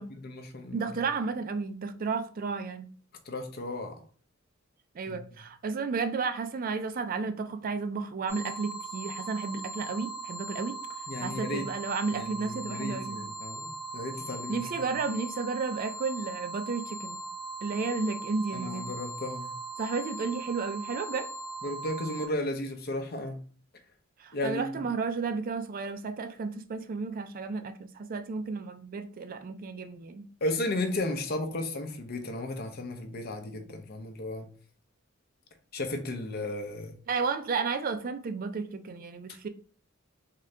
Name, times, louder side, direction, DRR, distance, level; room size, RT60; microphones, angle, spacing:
voice 1, 0.1-0.9 3.3-4.0 5.1-5.3 11.1-11.7 12.1-14.9 18.5-19.5 21.6-23.4 24.3-24.7 30.4-34.5 35.7-37.0, left 1 dB, 50° left, 0.7 m, -34 dB
voice 2, 0.7-2.9 4.9-10.8 11.2-13.2 14.5-17.2 17.6-18.8 19.8-21.3 24.2-30.3 37.1-39.5, right 4 dB, 45° right, 0.4 m, -32 dB
sound 1, 8.3-22.3, right 2 dB, 15° right, 1.7 m, -39 dB
3.7 x 2.7 x 3.3 m
head